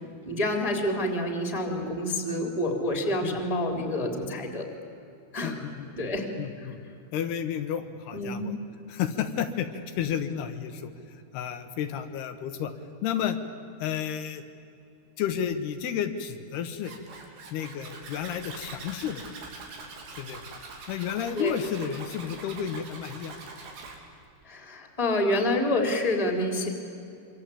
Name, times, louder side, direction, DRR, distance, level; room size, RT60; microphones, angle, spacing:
voice 1, 0.2-4.7 5.3-5.5 5.9-6.2 8.1-8.5 21.3-21.5 24.4-26.7, left 1 dB, 10° left, 3 dB, 2.8 m, -28 dB
voice 2, 5.4-6.8 7.1-8.5 8.9-10.9 11.3-12.7 13.0-13.4 13.8-14.4 15.2-16.9 17.5-19.3 20.1-20.4 20.9-23.4, left 9 dB, 75° left, 8 dB, 3.2 m, -32 dB
Zipper (clothing), 16.8-24.0, right 3 dB, 70° right, 5.1 m, -43 dB
26.0 x 25.5 x 8.7 m, 2.6 s
omnidirectional pair, 4.9 m